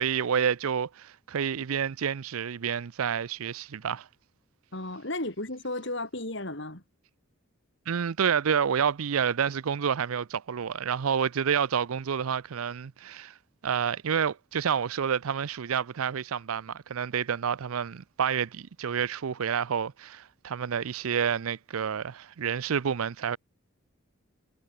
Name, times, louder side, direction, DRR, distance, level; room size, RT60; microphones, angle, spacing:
voice 1, 0.0-4.1 7.9-13.3 13.6-23.4, right 7 dB, 85° right, 0.5 m, -29 dB
voice 2, 4.7-6.8, left 2 dB, 55° left, 4.1 m, -34 dB
head